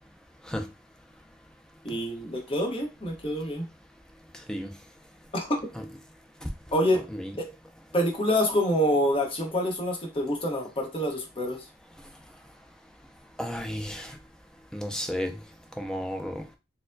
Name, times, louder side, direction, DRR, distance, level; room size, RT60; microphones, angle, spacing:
voice 1, 1.8-3.7 5.3-5.6 6.7-7.0 7.4-7.5 7.9-11.6, equal, 30° left, 1 dB, 0.9 m, -26 dB
voice 2, 13.4-14.1 14.7-15.3 15.8-16.4, equal, 5° left, 4 dB, 0.4 m, -32 dB
4.3 x 2.1 x 2.5 m, 0.27 s
head